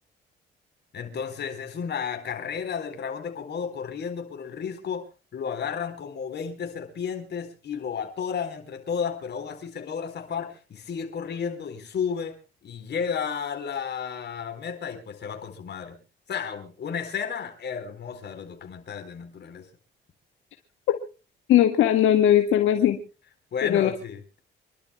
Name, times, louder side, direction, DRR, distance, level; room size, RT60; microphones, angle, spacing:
voice 1, 0.9-5.1 5.3-12.3 12.6-16.0 16.3-19.7 23.5-24.4, left 7 dB, 60° left, 7 dB, 4.3 m, -32 dB
voice 2, 21.5-23.0 23.6-23.9, left 11 dB, 85° left, 5 dB, 1.8 m, -19 dB
27.5 x 12.0 x 2.2 m, 0.34 s
cardioid pair, 90°, 20 cm